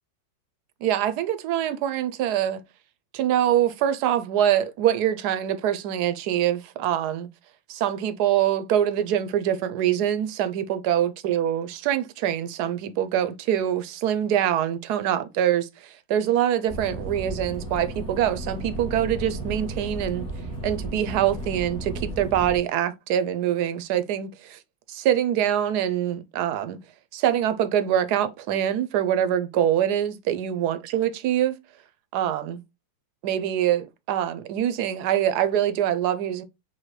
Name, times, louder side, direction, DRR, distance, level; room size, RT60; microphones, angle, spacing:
voice 1, 0.8-2.6 3.1-7.3 7.7-20.3 20.6-24.6 24.9-26.8 27.1-31.6 32.1-32.6 33.2-36.4, right 10 dB, 75° right, 1.0 m, -24 dB
sound 1, 16.7-22.6, right 1 dB, 40° left, 1.7 m, -34 dB
5.7 x 2.7 x 3.1 m
omnidirectional pair, 2.1 m